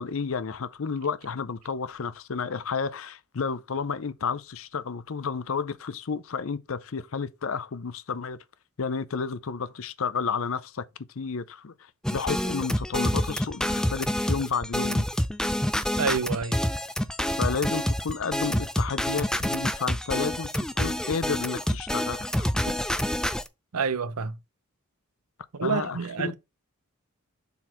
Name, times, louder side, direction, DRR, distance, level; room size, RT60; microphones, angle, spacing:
voice 1, 0.0-8.4 8.8-10.8 11.2-11.7 12.1-15.1 17.4-22.5 25.6-26.3, left 5 dB, 65° left, 0.6 m, -31 dB
sound 1, 12.0-23.5, equal, 5° left, 0.3 m, -27 dB
voice 2, 15.9-16.6 23.7-24.4 25.5-26.4, right 5 dB, 85° right, 0.8 m, -28 dB
7.0 x 4.0 x 4.4 m
head